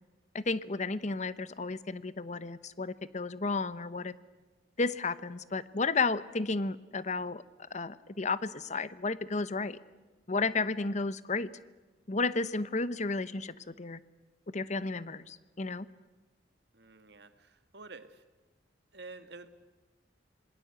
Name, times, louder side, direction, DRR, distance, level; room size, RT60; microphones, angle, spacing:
voice 1, 0.3-4.1 4.8-7.4 7.7-9.8 10.3-11.5 12.1-14.0 14.5-15.9, left 3 dB, 40° left, 16 dB, 0.9 m, -32 dB
voice 2, 16.7-18.2 18.9-19.5, right 3 dB, 60° right, 10 dB, 1.8 m, -49 dB
26.5 x 20.5 x 8.2 m, 1.2 s
head